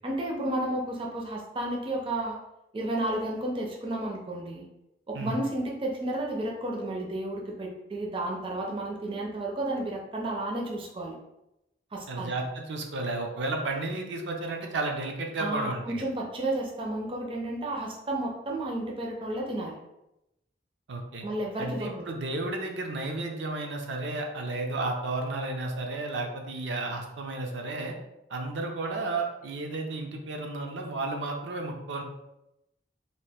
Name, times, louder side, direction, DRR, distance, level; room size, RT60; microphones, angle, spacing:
voice 1, 0.0-2.4 2.7-4.7 5.1-11.2 11.9-12.3 15.4-19.8 21.2-22.0, right 1 dB, 30° right, -1 dB, 0.4 m, -32 dB
voice 2, 12.1-16.0 20.9-21.3 21.6-27.9 28.3-32.0, right 2 dB, 80° right, 2 dB, 0.5 m, -32 dB
2.8 x 2.4 x 3.4 m, 0.89 s
head